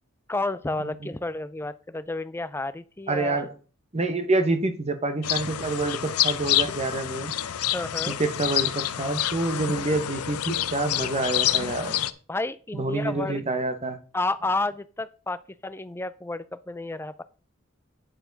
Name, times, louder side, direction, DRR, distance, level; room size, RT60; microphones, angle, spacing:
voice 1, 0.3-3.4 7.7-8.2 12.3-13.4 14.1-17.2, left 2 dB, 10° left, 14 dB, 0.4 m, -31 dB
voice 2, 0.8-1.1 3.1-3.5 3.9-7.3 8.1-12.0 12.7-14.0, right 2 dB, 30° right, 9 dB, 0.9 m, -27 dB
sound 1, 5.2-12.1, left 12 dB, 85° left, 0.6 m, -27 dB
9.1 x 7.0 x 3.9 m, 0.37 s
head